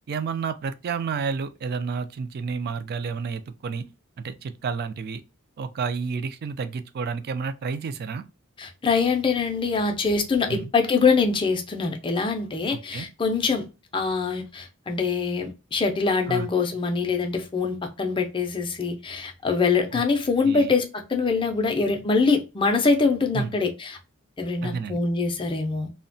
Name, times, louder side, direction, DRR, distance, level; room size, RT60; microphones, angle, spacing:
voice 1, 0.1-3.8 4.2-5.2 5.6-8.2 10.5-10.7 12.7-13.1 16.3-16.5 19.9-20.0 20.4-20.7 23.3-23.5 24.6-25.0, right 5 dB, 45° right, 0.3 m, -30 dB
voice 2, 8.6-13.6 13.9-24.0 24.4-25.9, left 4 dB, 25° left, 0.4 m, -24 dB
2.7 x 2.1 x 2.6 m
head